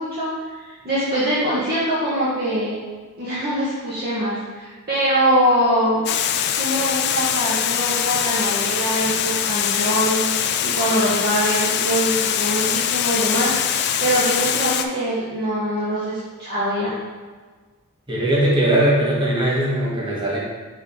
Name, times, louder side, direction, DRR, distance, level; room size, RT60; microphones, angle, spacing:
voice 1, 0.0-2.7 3.2-6.0 6.5-16.9, equal, 45° right, -10 dB, 1.2 m, -23 dB
Water, 6.1-14.9, left 9 dB, 50° left, 0.3 m, -22 dB
voice 2, 18.1-20.4, right 1 dB, 20° right, -6 dB, 1.3 m, -19 dB
6.0 x 3.6 x 4.3 m, 1.4 s
head